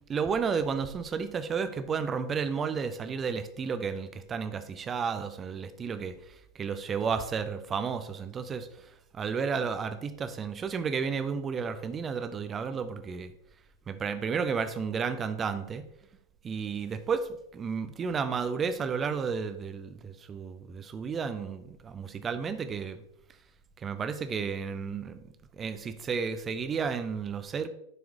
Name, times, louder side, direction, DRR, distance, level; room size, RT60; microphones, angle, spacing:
voice 1, 0.1-6.1 6.5-8.7 9.1-13.3 13.9-15.9 16.4-23.0 23.8-25.2 25.5-27.7, right 6 dB, 20° right, 10 dB, 0.6 m, -32 dB
11.0 x 4.7 x 2.4 m, 0.80 s
figure-of-eight pair, 90°, 0 cm